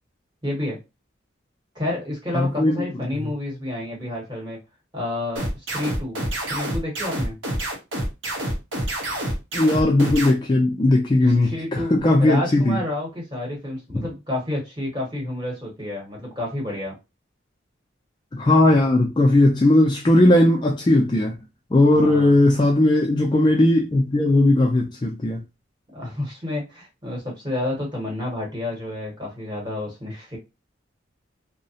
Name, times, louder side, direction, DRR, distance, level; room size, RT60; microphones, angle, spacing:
voice 1, 0.4-0.8 1.7-4.6 4.9-6.2 6.5-7.4 11.2-11.9 12.2-17.0 21.9-22.4 25.9-30.4, left 1 dB, 20° right, 1.0 m, -30 dB
voice 2, 2.3-2.8 9.5-12.8 13.9-14.0 18.3-21.3 21.7-25.4, left 1 dB, 25° left, 0.3 m, -18 dB
sound 1, 5.4-10.3, right 1 dB, 70° right, 0.9 m, -27 dB
2.7 x 2.0 x 2.7 m
head